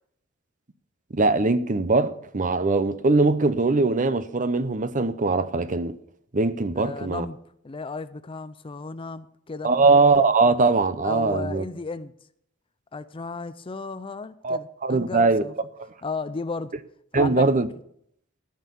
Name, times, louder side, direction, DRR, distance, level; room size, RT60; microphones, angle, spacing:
voice 1, 1.1-6.0 6.3-7.3 9.6-11.6 14.4-15.4 17.1-17.7, right 3 dB, 40° right, 0.7 m, -21 dB
voice 2, 6.8-7.4 7.6-9.7 11.0-12.1 12.9-15.5 16.0-16.7 17.1-17.5, left 4 dB, 25° left, 0.5 m, -34 dB
14.5 x 6.5 x 7.0 m
head